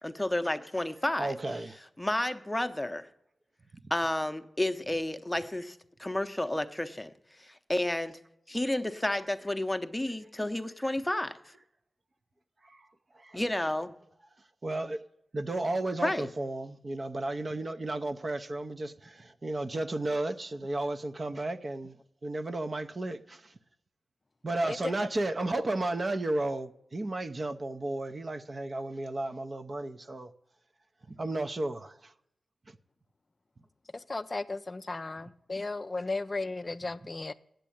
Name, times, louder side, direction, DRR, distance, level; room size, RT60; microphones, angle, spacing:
voice 1, 0.0-1.3 2.0-3.1 3.9-7.1 7.4-8.2 8.5-11.4 13.3-13.9 16.0-16.3, left 1 dB, 10° left, 0.7 m, -31 dB
voice 2, 1.2-1.8 3.7-3.8 12.6-12.9 13.1-13.4 14.6-15.0 15.3-22.0 22.2-23.5 24.4-30.3 31.1-32.1, right 2 dB, 40° right, 0.6 m, -33 dB
voice 3, 33.9-37.3, left 3 dB, 35° left, 0.4 m, -35 dB
9.1 x 7.5 x 8.5 m
wide cardioid pair, 80°, 0 cm